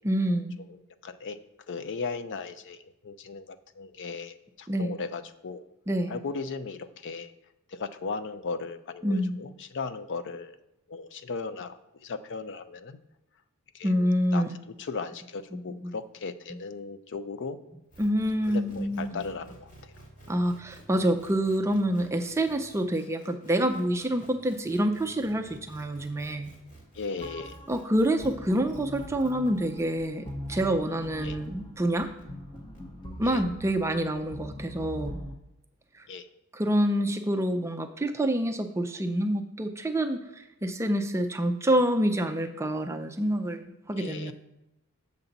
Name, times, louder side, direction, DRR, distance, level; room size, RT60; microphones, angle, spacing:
voice 1, 0.0-0.5 4.7-4.9 5.9-6.2 9.0-9.4 13.8-14.6 15.5-15.9 18.0-19.1 20.3-26.5 27.7-32.1 33.2-35.2 36.5-44.3, right 1 dB, 10° right, 5 dB, 0.4 m, -27 dB
voice 2, 1.0-1.4 1.7-5.6 6.1-7.3 7.7-10.6 10.9-13.0 13.7-13.9 14.3-17.6 18.5-19.9 26.9-27.6 31.2-31.4 33.2-33.4 36.1-36.3 44.0-44.3, left 4 dB, 55° left, 12 dB, 0.5 m, -37 dB
sound 1, 17.9-32.8, right 1 dB, 40° left, 1.8 m, -53 dB
sound 2, 27.2-35.3, equal, 20° left, 0.9 m, -42 dB
7.2 x 6.6 x 4.0 m, 0.93 s
head